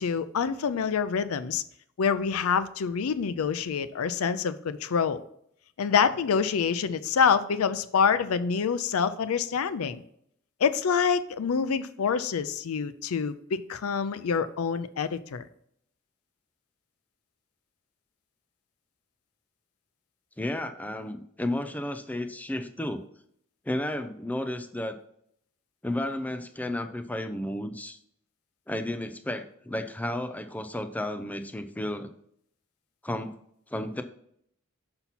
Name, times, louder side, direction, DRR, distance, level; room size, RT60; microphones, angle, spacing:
voice 1, 0.0-1.6 2.0-5.2 5.8-10.0 10.6-15.5, left 6 dB, 85° left, 14 dB, 0.4 m, -26 dB
voice 2, 20.4-23.1 23.7-25.0 25.8-28.0 28.7-32.1 33.0-33.3 33.7-34.0, left 1 dB, 5° left, 8 dB, 0.4 m, -32 dB
5.8 x 5.8 x 4.1 m, 0.71 s
head